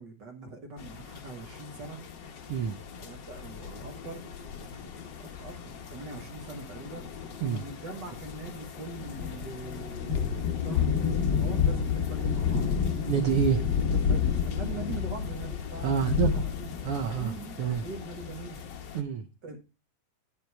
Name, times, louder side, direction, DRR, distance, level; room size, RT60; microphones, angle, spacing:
voice 1, 0.0-2.0 3.0-4.3 5.2-12.7 13.0-13.1 13.5-16.7 17.2-18.6 19.4-19.6, right 3 dB, 50° right, 4 dB, 1.3 m, -42 dB
sound 1, 0.8-19.0, left 7 dB, 85° left, 0.9 m, -32 dB
voice 2, 13.1-13.6 15.8-16.4 16.8-17.8 18.9-19.3, right 8 dB, 90° right, 7 dB, 1.2 m, -28 dB
10.0 x 6.2 x 4.7 m, 0.30 s
omnidirectional pair, 3.7 m